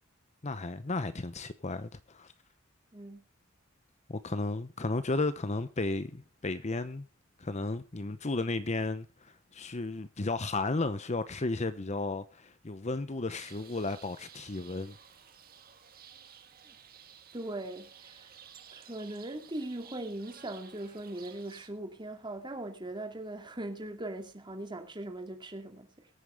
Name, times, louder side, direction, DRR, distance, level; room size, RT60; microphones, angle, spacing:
voice 1, 0.4-2.3 4.1-7.1 7.4-15.0, left 2 dB, 35° left, 0.8 m, -34 dB
voice 2, 2.9-3.2 16.6-16.8 17.3-18.3 18.7-26.1, right 1 dB, 25° right, 2.4 m, -40 dB
sound 1, 13.3-21.7, right 8 dB, 50° right, 1.7 m, -54 dB
22.5 x 9.1 x 3.5 m
head